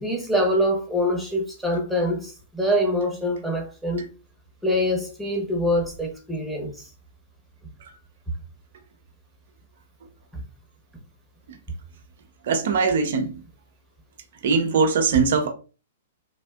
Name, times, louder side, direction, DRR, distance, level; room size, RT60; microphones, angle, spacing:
voice 1, 0.0-4.0 4.6-6.9, equal, ahead, 0.9 m, -24 dB
voice 2, 12.5-13.3 14.4-15.5, right 5 dB, 60° right, 0.5 m, -21 dB
3.4 x 2.4 x 2.3 m
figure-of-eight pair, 110°, 0 cm